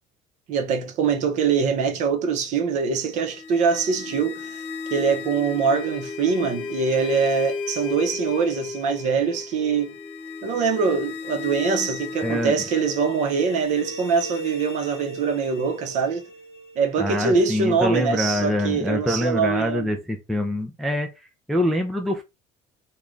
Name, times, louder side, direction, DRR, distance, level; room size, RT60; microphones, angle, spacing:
voice 1, 0.5-4.6 4.9-9.9 10.4-16.3 16.8-19.9, right 5 dB, 45° right, 0.7 m, -23 dB
sound 1, 3.0-17.9, left 4 dB, 30° left, 0.9 m, -35 dB
voice 2, 12.2-12.6 17.0-22.2, equal, ahead, 0.3 m, -25 dB
3.1 x 2.3 x 3.7 m
cardioid pair, 175°, 17 cm